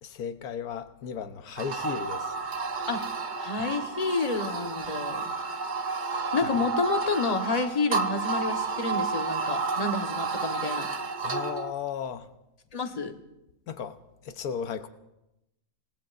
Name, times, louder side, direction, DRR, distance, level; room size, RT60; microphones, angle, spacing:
voice 1, 0.0-2.4 3.6-3.7 6.4-6.7 11.2-12.3 13.7-14.9, left 7 dB, 80° left, 1.4 m, -35 dB
sound 1, 1.6-11.7, right 4 dB, 40° right, 0.7 m, -31 dB
voice 2, 3.4-5.3 6.3-10.9 12.7-13.1, left 3 dB, 25° left, 1.2 m, -29 dB
28.5 x 18.5 x 2.5 m
omnidirectional pair, 1.6 m